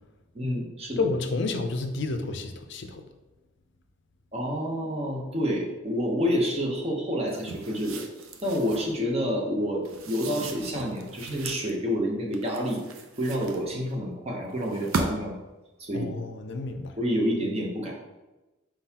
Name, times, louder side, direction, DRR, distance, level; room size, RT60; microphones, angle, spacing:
voice 1, 0.3-1.0 4.3-8.0 8.4-12.8 13.2-15.4 15.8-16.1 17.0-18.0, equal, 30° right, 0 dB, 0.7 m, -28 dB
voice 2, 1.0-3.0 15.9-16.9, left 3 dB, 60° left, 7 dB, 0.5 m, -30 dB
sound 1, 7.3-9.0 9.8-11.7 12.3-13.9 14.6-15.4, right 3 dB, 85° right, 0.5 m, -36 dB
4.5 x 3.8 x 2.8 m, 1.1 s
head